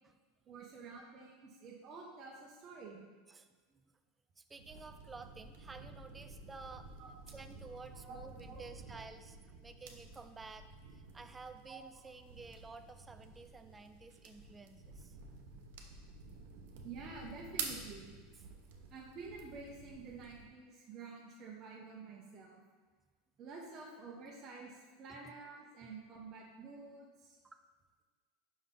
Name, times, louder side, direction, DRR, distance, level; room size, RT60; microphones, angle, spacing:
voice 1, 0.5-3.0 7.0-7.1 7.9-8.2 8.5-8.6 11.7-11.8 16.8-18.1 18.9-22.6 23.4-27.4, right 4 dB, 35° right, -3 dB, 0.9 m, -49 dB
voice 2, 3.3-3.9 4.4-6.9 7.3-15.2 25.1-25.4 25.8-25.9 27.4-27.6, right 4 dB, 15° right, 8 dB, 0.4 m, -52 dB
sound 1, 4.6-20.5, right 5 dB, 75° right, 0.8 m, -50 dB
5.5 x 5.3 x 3.8 m, 1.5 s
supercardioid pair, 125°, 0 cm